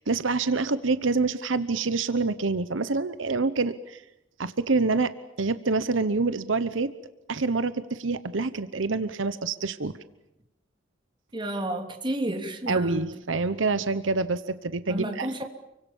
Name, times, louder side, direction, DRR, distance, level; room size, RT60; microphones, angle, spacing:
voice 1, 0.0-4.0 4.4-6.9 7.3-10.0 12.7-15.3, right 3 dB, 80° right, 14 dB, 1.0 m, -26 dB
voice 2, 11.3-13.0 14.9-15.4, right 1 dB, 25° right, 5 dB, 3.1 m, -31 dB
29.0 x 24.5 x 7.3 m, 0.88 s
head